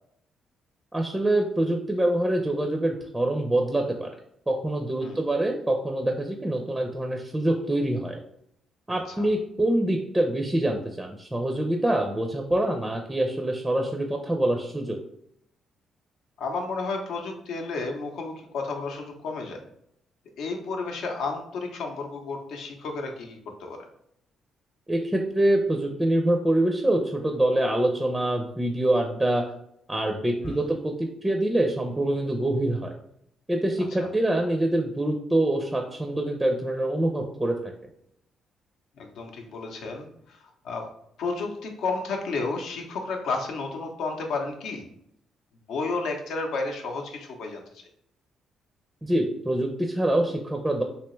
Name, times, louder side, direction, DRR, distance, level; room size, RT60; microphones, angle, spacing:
voice 1, 0.9-4.1 4.5-8.2 8.9-15.0 24.9-29.4 29.9-32.9 33.5-37.7 49.0-50.8, right 1 dB, 10° right, 3 dB, 0.5 m, -25 dB
voice 2, 16.4-19.6 20.4-23.9 30.4-30.7 39.0-40.9 41.2-44.8 45.7-47.8, left 3 dB, 80° left, 3 dB, 0.7 m, -32 dB
3.3 x 2.8 x 3.1 m, 0.73 s
cardioid pair, 90°, 0 cm